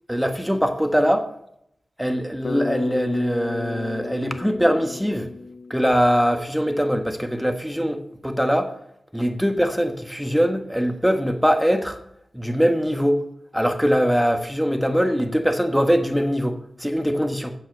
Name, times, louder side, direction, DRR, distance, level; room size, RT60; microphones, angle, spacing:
voice 1, 0.1-1.3 2.0-5.3 5.7-8.7 9.1-12.0 12.3-13.2 13.5-17.5, equal, ahead, 1.4 m, -22 dB
Bass guitar, 2.4-6.6, left 3 dB, 65° left, 1.0 m, -33 dB
9.4 x 7.6 x 7.4 m
wide cardioid pair, 70°, 0 cm